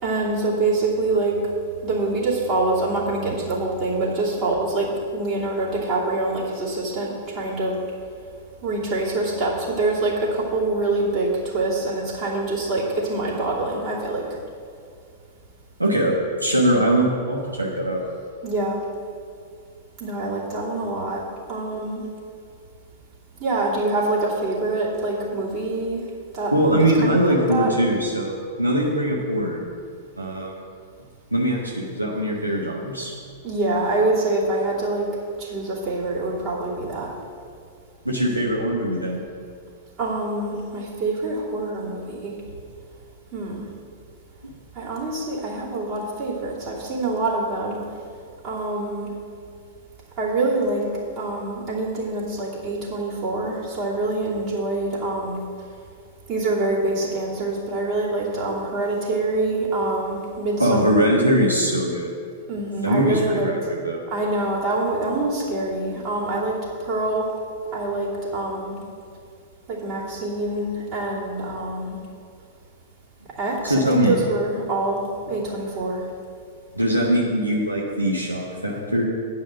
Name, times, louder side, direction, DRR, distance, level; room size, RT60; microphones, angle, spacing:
voice 1, 0.0-1.4 1.8-7.8 8.6-14.3 18.4-18.8 20.0-21.2 21.5-22.0 23.4-26.0 26.3-26.5 26.8-27.7 33.4-35.1 35.4-37.1 40.0-42.3 43.3-43.7 44.7-47.8 48.4-49.1 50.2-50.8 51.2-55.4 56.3-61.2 62.5-63.5 64.1-67.3 67.7-68.8 69.7-72.0 73.4-76.0, right 2 dB, 40° right, -8 dB, 2.8 m, -25 dB
voice 2, 15.8-16.1 16.4-18.0 26.5-29.6 30.2-30.5 31.3-33.1 38.0-39.2 44.4-44.5 60.6-62.1 62.8-64.0 73.6-74.1 76.7-79.0, equal, 90° right, -3 dB, 1.1 m, -21 dB
8.9 x 5.7 x 7.4 m, 2.2 s
figure-of-eight pair, 95°, 0 cm